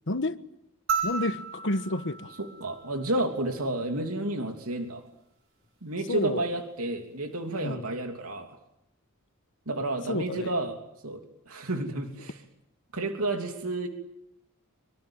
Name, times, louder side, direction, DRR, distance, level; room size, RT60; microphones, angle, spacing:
voice 1, 0.1-0.4 1.0-2.3 6.1-6.4 7.6-7.9 10.1-10.5, left 2 dB, 60° left, 1.4 m, -30 dB
sound 1, 0.9-3.5 5.1-5.2, right 6 dB, 60° right, 6.7 m, -34 dB
voice 2, 2.4-5.0 5.8-8.6 9.7-11.2 11.5-12.4 12.9-13.9, right 2 dB, 80° right, 3.2 m, -31 dB
25.0 x 24.5 x 9.0 m
head